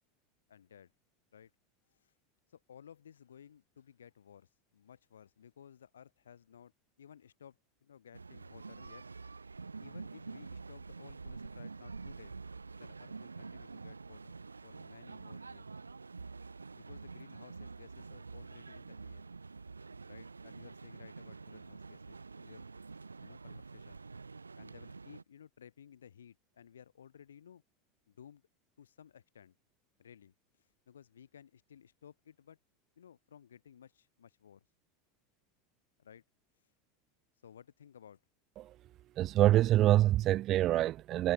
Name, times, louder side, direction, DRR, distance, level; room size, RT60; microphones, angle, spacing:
voice 1, 0.5-0.9 1.3-1.5 1.9-2.1 2.5-6.7 7.0-9.1 9.8-12.4 12.8-15.7 16.4-19.3 20.1-22.7 23.2-24.0 24.6-27.6 28.1-28.4 28.8-29.5 30.0-32.6 33.0-34.6 36.0-36.2 37.4-38.2, left 8 dB, 75° left, 4.4 m, -57 dB
sound 1, 8.1-25.2, right 4 dB, 85° right, 3.3 m, -47 dB
voice 2, 39.2-41.3, right 14 dB, 40° right, 0.4 m, -26 dB
figure-of-eight pair, 80°, 0 cm